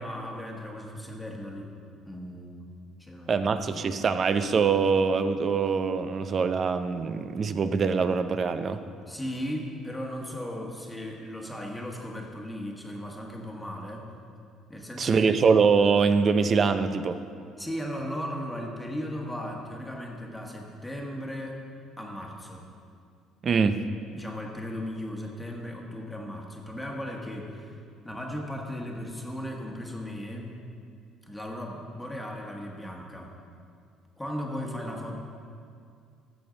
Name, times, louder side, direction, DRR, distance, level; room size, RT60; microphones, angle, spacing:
voice 1, 0.0-1.7 2.0-2.7 3.0-3.4 9.1-14.1 14.7-15.4 17.6-21.6 22.0-22.6 24.1-27.8 28.0-30.5 31.3-33.3 34.2-35.2, equal, 5° left, 0 dB, 1.4 m, -36 dB
voice 2, 3.3-8.8 15.0-17.2 23.4-23.8, right 5 dB, 40° right, 11 dB, 0.5 m, -23 dB
13.5 x 7.0 x 3.9 m, 2.3 s
cardioid pair, 105°, 0 cm